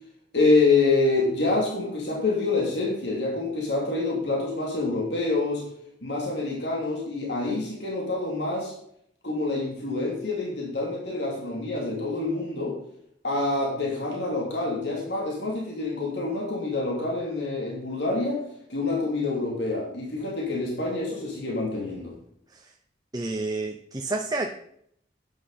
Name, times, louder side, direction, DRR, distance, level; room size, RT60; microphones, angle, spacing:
voice 1, 0.3-5.6 6.0-8.7 9.2-12.8 13.2-18.4 18.7-22.1, left 3 dB, 70° left, -2 dB, 3.1 m, -26 dB
voice 2, 23.1-24.5, right 2 dB, 20° right, 4 dB, 0.7 m, -29 dB
11.5 x 9.7 x 4.2 m, 0.68 s
head